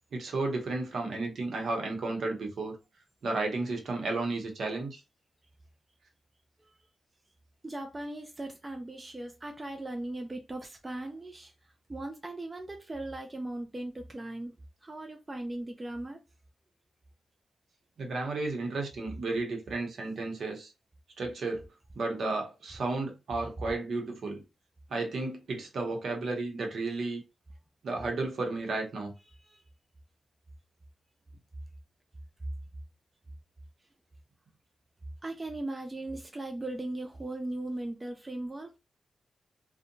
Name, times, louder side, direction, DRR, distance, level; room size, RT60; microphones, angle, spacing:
voice 1, 0.1-2.8 3.2-5.0 18.0-20.7 21.2-21.6 21.9-24.4 24.9-27.2 27.8-29.1, right 3 dB, 65° right, 0.8 m, -33 dB
voice 2, 7.6-11.5 11.9-16.2 29.3-29.7 35.2-38.8, right 1 dB, 20° right, 0.4 m, -38 dB
2.7 x 2.1 x 2.6 m
wide cardioid pair, 120°, 0 cm